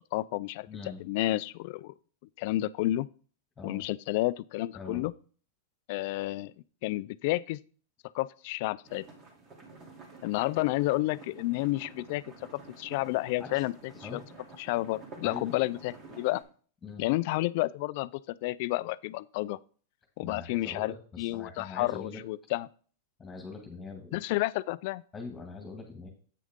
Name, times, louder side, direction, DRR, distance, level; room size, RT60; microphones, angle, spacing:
voice 1, 0.0-0.7 1.0-1.9 2.4-3.1 3.6-5.1 5.9-6.5 6.8-7.6 8.1-9.0 10.2-12.2 12.5-13.7 14.0-14.2 14.6-16.4 17.0-19.6 20.2-22.7 24.1-25.0, left 18 dB, 60° left, 0.3 m, -30 dB
voice 2, 0.7-1.0 3.6-3.8 4.7-5.1 13.4-13.6 14.0-14.2 15.2-15.4 16.8-17.0 20.2-22.2 23.2-24.3 25.1-26.1, left 4 dB, 15° left, 1.9 m, -42 dB
sound 1, 8.8-16.4, right 3 dB, 40° right, 2.8 m, -50 dB
8.5 x 6.3 x 3.6 m
hypercardioid pair, 125°, 0 cm